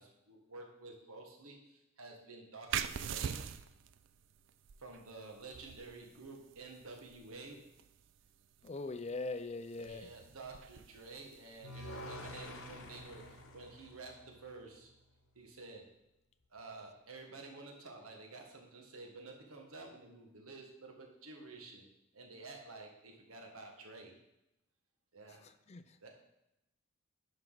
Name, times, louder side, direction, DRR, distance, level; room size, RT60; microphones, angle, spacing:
voice 1, 0.0-3.4 4.8-7.7 9.8-14.9 15.3-15.9 16.5-21.8 22.1-24.1 25.1-25.5 26.0-26.1, right 3 dB, 85° right, 2 dB, 1.6 m, -51 dB
sound 1, 2.7-14.0, right 8 dB, 60° right, 0.4 m, -46 dB
voice 2, 8.6-10.1 25.3-26.0, left 3 dB, 30° left, 11 dB, 0.4 m, -42 dB
sound 2, 11.6-14.8, left 1 dB, 80° left, 1.1 m, -48 dB
10.5 x 5.6 x 4.0 m, 0.88 s
head